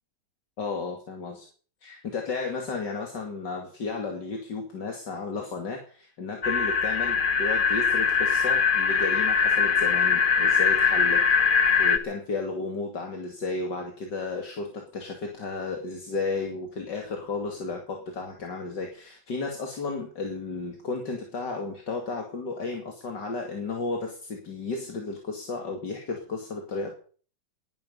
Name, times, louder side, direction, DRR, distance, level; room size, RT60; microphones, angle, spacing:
voice 1, 0.6-1.5 1.8-26.9, left 3 dB, 75° left, 2 dB, 3.1 m, -33 dB
sound 1, 6.4-12.0, left 6 dB, 35° left, 1.0 m, -22 dB
20.0 x 13.0 x 5.5 m, 0.43 s
omnidirectional pair, 1.9 m